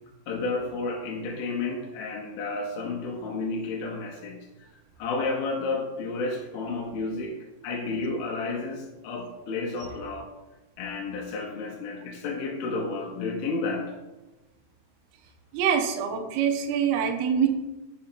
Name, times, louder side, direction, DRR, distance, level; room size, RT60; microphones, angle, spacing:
voice 1, 0.3-4.5 5.0-7.4 7.6-10.3 10.8-14.0, left 3 dB, 85° left, 0 dB, 2.1 m, -31 dB
voice 2, 15.5-17.5, right 7 dB, 85° right, 3 dB, 2.2 m, -24 dB
6.2 x 5.2 x 4.4 m, 1.1 s
omnidirectional pair, 5.5 m